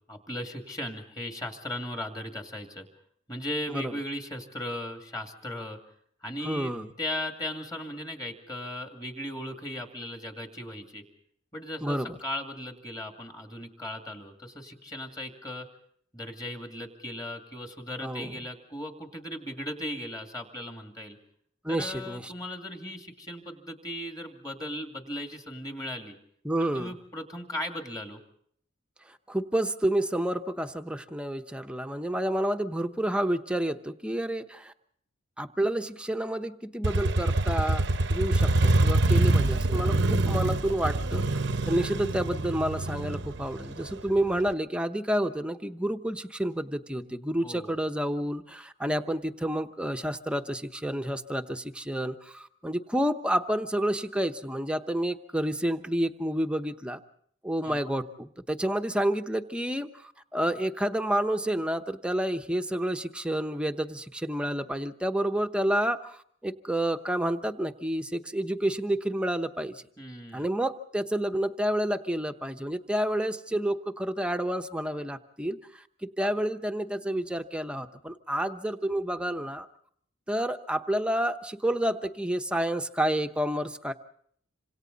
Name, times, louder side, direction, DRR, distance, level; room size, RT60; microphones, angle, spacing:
voice 1, 0.1-2.9 3.3-5.8 6.2-6.7 7.0-11.0 11.5-15.7 16.1-21.2 21.7-26.2 26.7-28.2 39.1-39.4 47.4-47.8 57.6-57.9 70.0-70.5, left 1 dB, 20° left, 3 dB, 2.3 m, -37 dB
voice 2, 6.4-6.9 11.8-12.2 18.0-18.4 21.6-22.3 26.4-26.9 29.3-34.7 35.4-37.8 38.1-57.0 57.4-69.8 70.3-79.7 80.3-83.9, right 1 dB, 5° right, 7 dB, 0.9 m, -29 dB
Motorcycle, 36.8-44.5, right 2 dB, 60° right, 0.8 m, -25 dB
27.0 x 26.0 x 4.0 m, 0.64 s
head